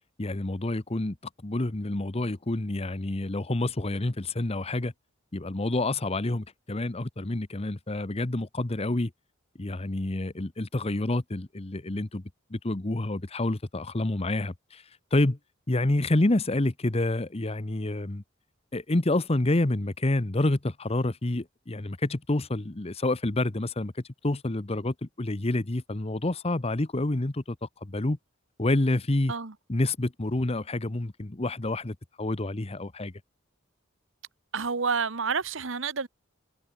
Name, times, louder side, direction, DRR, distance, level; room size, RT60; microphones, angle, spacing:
voice 1, 0.2-1.2 1.4-4.9 5.3-9.1 9.6-12.2 12.5-14.8 15.1-15.4 15.7-18.2 18.7-23.9 24.2-28.2 28.6-29.3 29.7-33.1, left 2 dB, 30° left, 1.0 m, -28 dB
voice 2, 34.5-36.1, right 5 dB, 65° right, 1.1 m, -29 dB
head